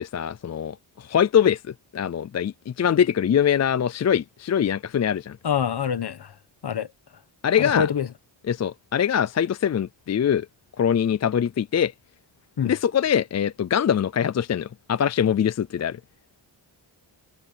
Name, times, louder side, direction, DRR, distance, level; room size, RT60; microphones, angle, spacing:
voice 1, 0.0-5.4 7.4-7.9 8.4-10.5 10.8-11.9 12.6-16.0, left 8 dB, 40° left, 0.4 m, -23 dB
voice 2, 5.4-6.2 6.6-6.9 7.6-8.1 12.6-12.7, left 7 dB, 55° left, 1.4 m, -25 dB
wide cardioid pair, 150°, 46 cm